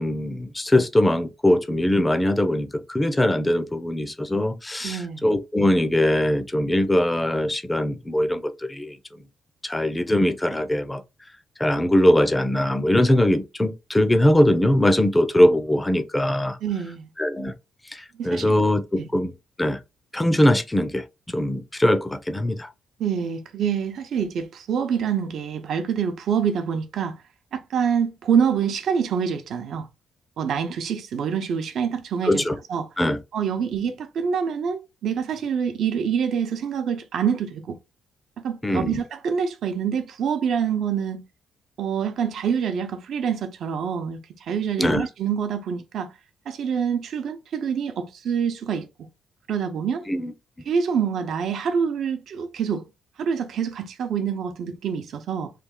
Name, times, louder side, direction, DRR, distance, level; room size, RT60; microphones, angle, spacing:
voice 1, 0.0-9.0 9.6-11.0 11.6-16.6 17.2-17.5 17.9-19.3 19.6-19.8 20.1-22.7 32.2-32.6 33.0-33.2 38.6-39.0 44.8-45.1 50.1-50.3, left 1 dB, 15° left, 0.5 m, -21 dB
voice 2, 4.8-5.3 16.6-17.1 18.2-18.6 19.0-19.1 23.0-27.2 27.5-29.9 30.4-32.9 33.3-37.8 38.4-41.2 41.8-44.2 44.5-46.1 46.5-48.8 49.5-50.1 50.7-52.8 53.2-55.5, right 7 dB, 65° right, 0.7 m, -26 dB
3.3 x 2.4 x 3.6 m
cardioid pair, 90°, 0 cm